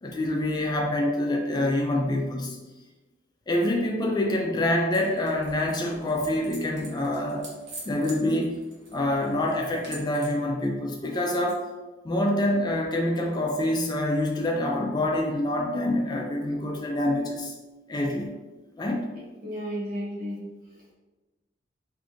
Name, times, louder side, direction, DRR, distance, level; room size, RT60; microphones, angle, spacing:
voice 1, 0.0-2.6 3.5-7.5 7.9-8.6 8.9-11.7 12.0-17.5 17.9-18.3 18.8-19.0, left 1 dB, 25° left, 0 dB, 0.3 m, -26 dB
sound 1, 4.9-10.4, right 2 dB, 90° right, 1.0 m, -46 dB
voice 2, 19.1-20.4, equal, 55° right, -6 dB, 1.3 m, -33 dB
2.6 x 2.5 x 3.6 m, 1.2 s
head